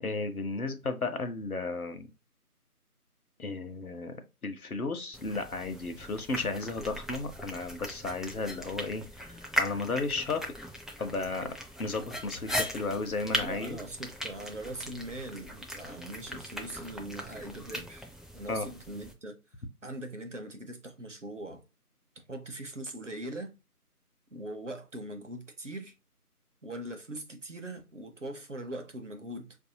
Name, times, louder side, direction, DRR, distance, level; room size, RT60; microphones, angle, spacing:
voice 1, 0.0-2.1 3.4-10.5 11.0-11.5 11.8-13.8 18.5-18.7, left 3 dB, 70° left, 0.8 m, -34 dB
sound 1, 5.1-19.1, equal, ahead, 0.4 m, -38 dB
voice 2, 13.4-19.3 19.8-21.6 22.3-23.6 24.3-25.9 26.6-29.6, right 1 dB, 50° right, 0.7 m, -41 dB
4.2 x 2.7 x 2.6 m
figure-of-eight pair, 180°, 46 cm